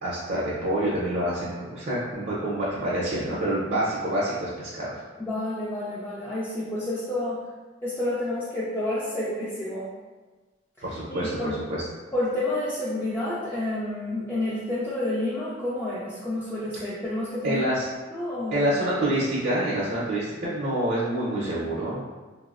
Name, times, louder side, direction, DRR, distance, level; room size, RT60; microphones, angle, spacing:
voice 1, 0.0-5.0 10.8-11.8 16.8-16.9 17.4-17.9 18.5-22.0, right 1 dB, 50° right, -7 dB, 0.6 m, -27 dB
voice 2, 5.2-7.4 7.8-9.9 11.1-11.6 12.1-17.6 18.1-18.7, left 1 dB, 10° left, -10 dB, 0.4 m, -29 dB
3.4 x 2.0 x 2.4 m, 1.2 s
head